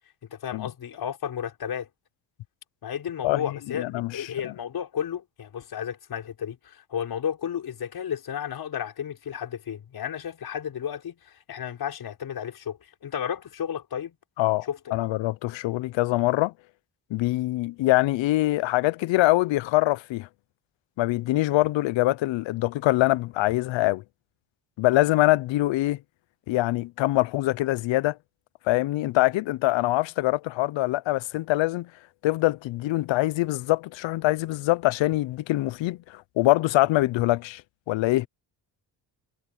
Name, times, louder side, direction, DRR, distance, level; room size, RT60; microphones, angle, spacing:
voice 1, 0.2-1.9 2.8-14.2 14.7-14.8, left 8 dB, 55° left, 5.7 m, -33 dB
voice 2, 3.7-4.5 14.4-16.5 17.1-20.3 21.0-24.0 24.8-26.0 26.5-28.2 28.7-31.9 32.2-37.6 37.9-38.3, left 17 dB, 75° left, 0.7 m, -24 dB
cardioid pair, 150°, 45 cm